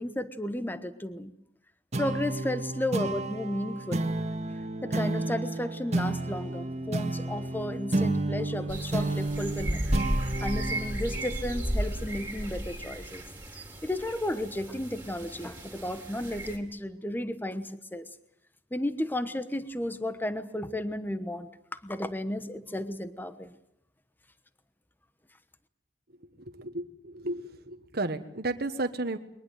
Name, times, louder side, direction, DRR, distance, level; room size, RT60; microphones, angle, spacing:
voice 1, 0.0-1.3 2.0-4.1 4.8-9.8 10.4-13.2 13.8-18.0 18.7-21.5 21.8-23.5, left 1 dB, 10° left, 11 dB, 1.1 m, -33 dB
sound 1, 1.9-12.8, right 2 dB, 40° right, 1.8 m, -32 dB
sound 2, 8.7-16.6, right 1 dB, 10° right, 4.0 m, -34 dB
voice 2, 26.5-29.2, right 2 dB, 60° right, 7 dB, 1.4 m, -33 dB
22.5 x 20.0 x 9.2 m, 0.76 s
head